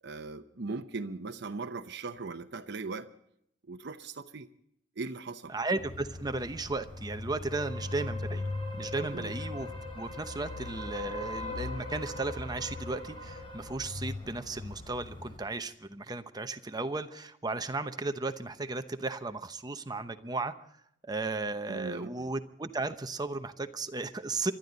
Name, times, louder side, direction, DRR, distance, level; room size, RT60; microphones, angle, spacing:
voice 1, 0.0-3.1 3.7-4.5 5.0-5.5 9.1-9.3 21.7-22.3, right 3 dB, 65° right, 6 dB, 0.8 m, -39 dB
voice 2, 5.5-8.5 8.8-9.7 9.9-20.5 21.0-24.5, right 3 dB, 20° right, 9 dB, 0.8 m, -35 dB
sound 1, 5.8-15.4, left 2 dB, 30° left, 4.1 m, -39 dB
28.0 x 12.5 x 4.0 m, 0.71 s
head